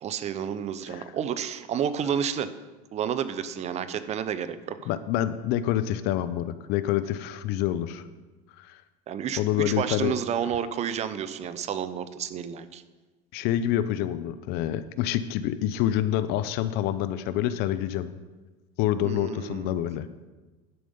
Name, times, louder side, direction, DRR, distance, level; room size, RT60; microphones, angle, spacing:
voice 1, 0.0-2.5 2.9-4.9 9.1-12.8 19.0-19.8, right 8 dB, 35° right, 13 dB, 0.6 m, -30 dB
voice 2, 4.9-8.0 8.6-8.8 9.4-10.2 13.3-18.1 18.8-20.1, left 12 dB, 60° left, 14 dB, 0.5 m, -27 dB
11.0 x 5.2 x 5.3 m, 1.2 s
supercardioid pair, 105°, 19 cm